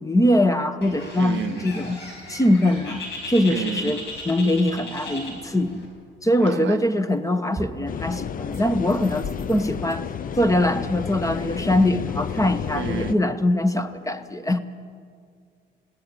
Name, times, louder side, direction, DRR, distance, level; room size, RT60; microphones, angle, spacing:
voice 1, 0.0-2.0 2.3-5.8 6.2-10.0 10.4-14.6, left 1 dB, 15° left, 11 dB, 1.2 m, -22 dB
Bird, 0.8-5.9, left 2 dB, 60° left, 5.6 m, -37 dB
voice 2, 1.2-1.7 3.5-3.9 6.4-6.8 12.8-13.1, right 10 dB, 70° right, 14 dB, 0.8 m, -31 dB
sound 1, 6.8-7.2 7.5-8.0 8.5-9.9, right 2 dB, 15° right, 3.3 m, -39 dB
sound 2, 7.9-13.1, left 8 dB, 45° left, 0.6 m, -31 dB
20.5 x 17.0 x 8.3 m, 2.1 s
cardioid pair, 90°, 20 cm